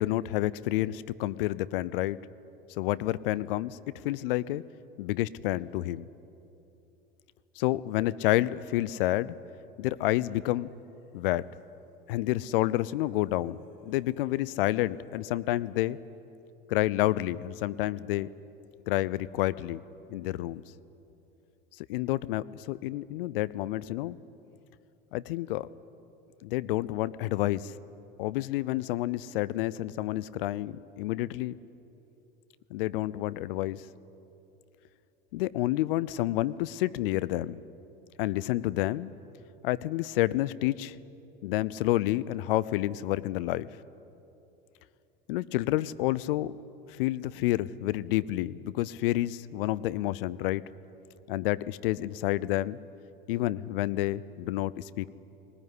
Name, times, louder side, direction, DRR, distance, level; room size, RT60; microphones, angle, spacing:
voice 1, 0.0-2.2 2.8-3.8 4.0-4.6 5.0-6.0 7.6-9.4 9.8-10.7 11.1-11.5 12.1-16.0 16.7-18.3 18.9-19.8 20.1-20.6 21.9-24.2 25.1-25.7 26.4-27.7 28.2-31.5 32.7-33.8 35.3-37.6 38.2-39.1 39.6-40.9 41.4-43.7 45.3-46.5 46.9-50.6 51.3-52.8 53.3-55.1, left 16 dB, 70° left, 19 dB, 0.7 m, -29 dB
19.5 x 19.5 x 9.7 m, 2.9 s
hypercardioid pair, 80°, 29 cm